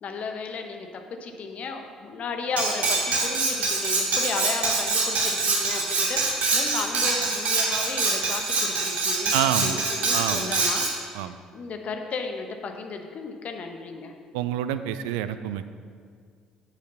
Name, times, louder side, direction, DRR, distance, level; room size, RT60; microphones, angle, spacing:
voice 1, 0.0-10.9 11.2-14.1, left 4 dB, 45° left, 5 dB, 1.1 m, -34 dB
Cutlery silverware, 2.6-10.9, right 3 dB, 50° right, 2.3 m, -25 dB
voice 2, 9.3-9.8 10.1-10.5 11.1-11.4 14.3-15.7, right 11 dB, 70° right, 12 dB, 0.4 m, -27 dB
8.5 x 8.2 x 5.7 m, 2.1 s
figure-of-eight pair, 50°, 3 cm